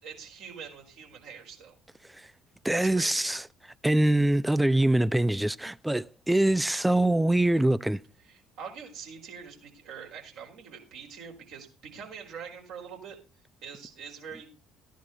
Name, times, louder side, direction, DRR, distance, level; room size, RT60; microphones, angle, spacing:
voice 1, 0.0-1.7 2.7-3.3 8.2-13.2 13.6-14.5, right 6 dB, 60° right, 4.7 m, -44 dB
voice 2, 2.6-3.4 3.8-8.0, right 1 dB, 5° right, 0.6 m, -24 dB
14.5 x 10.5 x 4.0 m
figure-of-eight pair, 55°, 0 cm